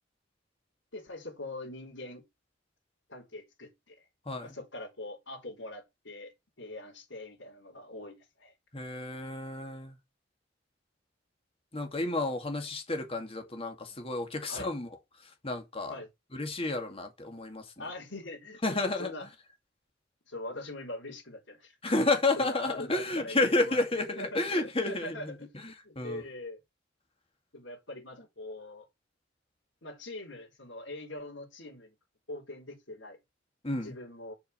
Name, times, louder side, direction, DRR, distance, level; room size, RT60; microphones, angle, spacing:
voice 1, 0.9-2.2 3.1-4.1 4.4-6.3 6.6-8.5 13.9-14.0 14.4-14.7 15.9-16.1 17.8-18.6 19.0-19.3 20.3-21.8 22.4-23.9 24.2-26.6 27.5-28.8 29.8-31.9 32.3-33.2 33.7-34.3, left 1 dB, 70° left, 4.0 m, -43 dB
voice 2, 8.7-9.9 11.7-14.9 15.4-15.9 16.3-17.6 18.6-19.1 21.8-25.4 26.0-26.2 33.6-33.9, left 2 dB, 30° left, 2.3 m, -31 dB
6.9 x 5.0 x 6.7 m
head